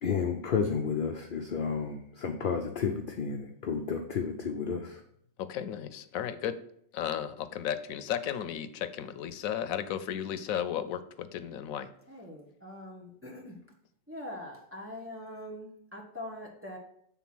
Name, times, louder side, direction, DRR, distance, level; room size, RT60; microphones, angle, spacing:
voice 1, 0.0-5.0, left 6 dB, 50° left, 4 dB, 0.7 m, -31 dB
voice 2, 5.4-6.6 6.9-11.9, left 9 dB, 85° left, 12 dB, 1.0 m, -34 dB
voice 3, 12.1-13.6 14.1-16.8, left 1 dB, 10° right, -3 dB, 1.3 m, -43 dB
7.1 x 3.8 x 6.0 m, 0.68 s
omnidirectional pair, 1.4 m